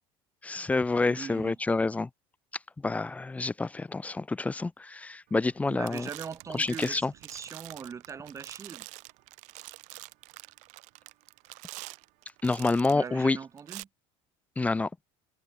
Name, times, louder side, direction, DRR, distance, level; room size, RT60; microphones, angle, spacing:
voice 1, 0.4-2.1 2.8-6.1 6.5-7.1 12.4-13.4 14.6-14.9, left 3 dB, 10° left, 1.0 m, -28 dB
voice 2, 1.0-1.6 5.7-8.9 12.9-13.9, right 6 dB, 20° right, 2.8 m, -41 dB
sound 1, 5.3-5.6 5.8-13.1 13.6-13.8, right 25 dB, 65° right, 2.2 m, -46 dB
cardioid pair, 140°, 13 cm